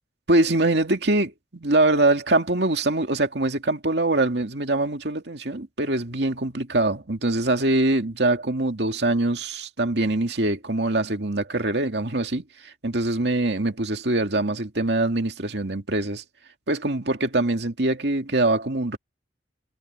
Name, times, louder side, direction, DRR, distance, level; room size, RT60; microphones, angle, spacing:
voice 1, 0.3-16.2 16.7-19.0, right 2 dB, 70° right, 2.2 m, -23 dB
head